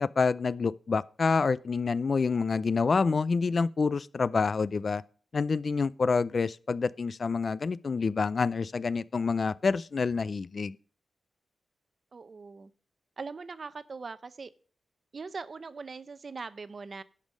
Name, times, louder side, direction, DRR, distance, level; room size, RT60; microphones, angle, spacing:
voice 1, 0.0-5.0 5.3-10.8, left 4 dB, 45° left, 0.4 m, -27 dB
voice 2, 12.1-12.7 13.2-14.5 15.1-17.0, right 4 dB, 45° right, 0.7 m, -41 dB
11.5 x 5.3 x 6.4 m
wide cardioid pair, 115°, 0 cm